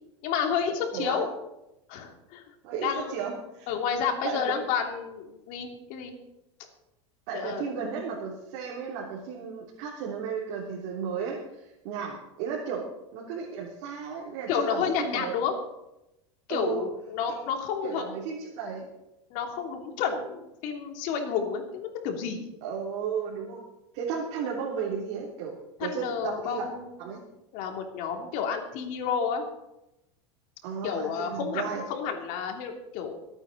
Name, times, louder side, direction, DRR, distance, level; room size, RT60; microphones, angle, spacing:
voice 1, 0.2-1.3 1.9-2.4 2.8-3.1 3.7-6.1 7.3-7.7 14.5-15.5 16.5-18.1 19.3-22.5 25.8-27.0 27.5-29.4 30.8-33.2, left 7 dB, 60° left, 3 dB, 3.0 m, -30 dB
voice 2, 2.6-3.7 4.2-4.4 7.3-12.8 13.1-15.4 16.5-16.9 17.8-18.9 22.6-23.6 23.9-25.5 25.8-26.7 27.0-27.2 30.6-31.8, right 6 dB, 65° right, -4 dB, 3.2 m, -34 dB
23.0 x 9.0 x 4.1 m, 0.90 s
hypercardioid pair, 100°, 15 cm